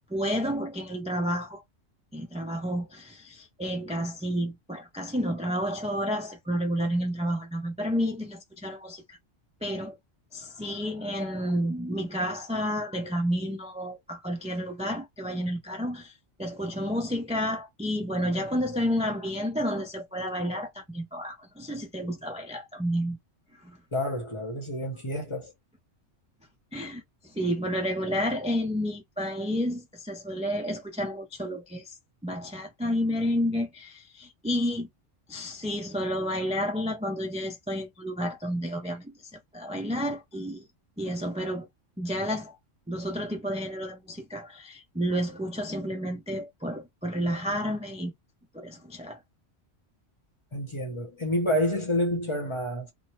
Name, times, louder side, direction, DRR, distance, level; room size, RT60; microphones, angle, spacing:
voice 1, 0.1-1.6 2.1-9.2 9.6-10.0 10.3-23.2 23.6-23.8 26.7-32.0 32.2-34.9 35.3-40.7 41.0-41.7 42.0-42.6 42.9-48.1 48.5-49.2, equal, 10° right, 0.4 m, -30 dB
voice 2, 23.9-25.5 50.5-52.9, left 1 dB, 30° left, 0.8 m, -28 dB
2.9 x 2.0 x 2.9 m
omnidirectional pair, 1.2 m